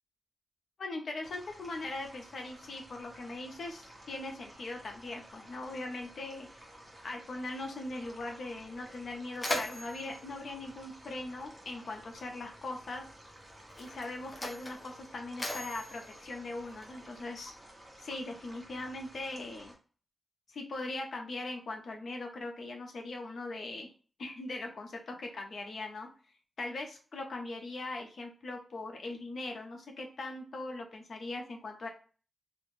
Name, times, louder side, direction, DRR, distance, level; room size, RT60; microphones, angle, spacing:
voice 1, 0.8-6.5 7.0-13.0 13.8-17.5 18.0-19.7 20.5-23.9 24.2-26.1 26.6-31.9, left 2 dB, 65° left, 2 dB, 0.5 m, -40 dB
sound 1, 1.2-19.7, right 1 dB, 20° right, 0.7 m, -53 dB
Mechanisms, 8.9-11.6 12.6-12.8 13.6-17.2, left 1 dB, 20° left, 0.6 m, -40 dB
2.4 x 2.1 x 3.0 m, 0.39 s
wide cardioid pair, 120°, 0 cm